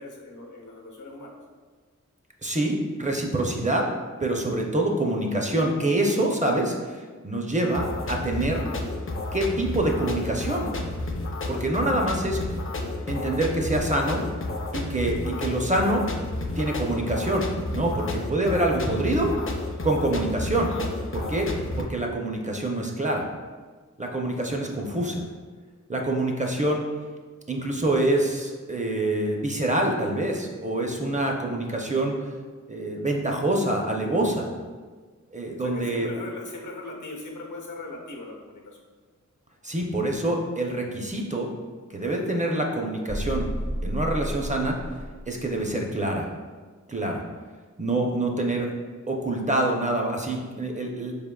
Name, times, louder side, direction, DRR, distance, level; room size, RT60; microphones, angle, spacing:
voice 1, 0.0-1.3 35.6-38.8, left 2 dB, 75° left, -1 dB, 0.8 m, -39 dB
voice 2, 2.4-3.9 4.2-8.6 9.3-10.7 11.5-12.4 13.1-14.2 14.7-16.0 16.6-19.3 19.8-20.7 21.1-21.5 21.8-23.2 24.0-25.2 25.9-26.8 27.5-32.1 32.7-34.5 35.3-36.1 39.6-41.5 41.9-43.5 43.8-44.8 45.3-46.3 46.9-47.2 47.8-48.7 49.1-51.1, right 1 dB, 25° right, 0 dB, 0.5 m, -26 dB
sound 1, 7.7-21.8, left 2 dB, 45° left, 0.4 m, -31 dB
sound 2, 43.1-45.8, equal, 80° right, 0.9 m, -32 dB
4.6 x 3.5 x 2.2 m, 1.4 s
wide cardioid pair, 80°, 30 cm